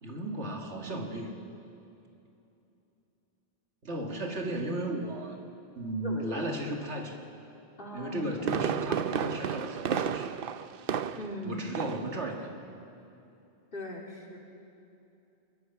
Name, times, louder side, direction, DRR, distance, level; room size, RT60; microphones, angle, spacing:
voice 1, 0.0-1.4 3.8-5.4 5.8-7.2 7.9-10.4 11.4-12.6, right 1 dB, 75° right, 1 dB, 2.5 m, -35 dB
voice 2, 6.0-6.4 7.8-8.3 11.1-11.6 13.7-14.4, left 1 dB, 50° left, -1 dB, 3.2 m, -39 dB
Fireworks, 8.0-11.4 11.7-12.1 12.4-12.5, right 8 dB, 60° right, 0.8 m, -32 dB
25.5 x 22.0 x 5.9 m, 2.8 s
omnidirectional pair, 1.2 m